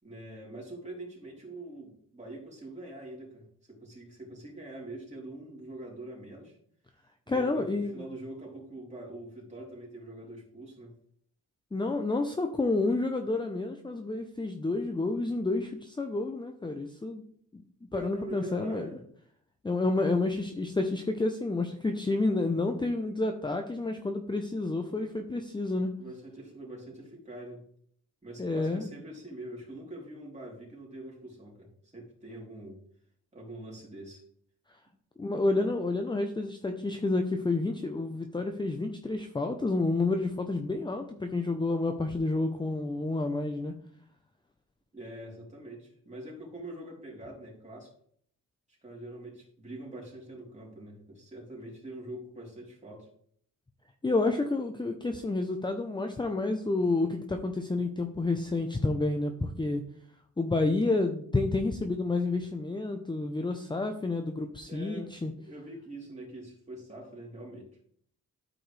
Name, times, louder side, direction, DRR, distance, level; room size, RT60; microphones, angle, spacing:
voice 1, 0.0-6.6 7.3-11.0 17.9-19.0 26.0-27.6 28.2-32.8 33.3-34.2 44.9-47.9 48.7-53.1 64.7-65.1 65.4-67.7, right 1 dB, 20° right, -3 dB, 3.7 m, -44 dB
voice 2, 7.3-8.0 11.7-17.2 17.5-17.6 17.9-19.0 19.6-25.9 28.4-28.8 35.2-43.8 54.0-59.8 60.4-65.3, left 2 dB, 15° left, 5 dB, 0.7 m, -29 dB
12.5 x 5.1 x 3.3 m, 0.62 s
cardioid pair, 100°, 31 cm